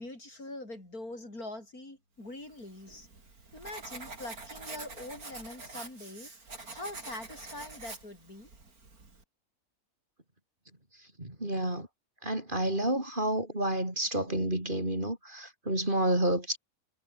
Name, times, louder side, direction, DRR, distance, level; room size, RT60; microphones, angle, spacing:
voice 1, 0.0-3.1 3.5-8.5, left 2 dB, 75° left, 8.2 m, -43 dB
Writing, 2.5-9.2, right 3 dB, 75° right, 4.4 m, -46 dB
voice 2, 11.2-11.9 12.2-16.6, right 1 dB, 35° right, 6.5 m, -30 dB
omnidirectional pair, 1.6 m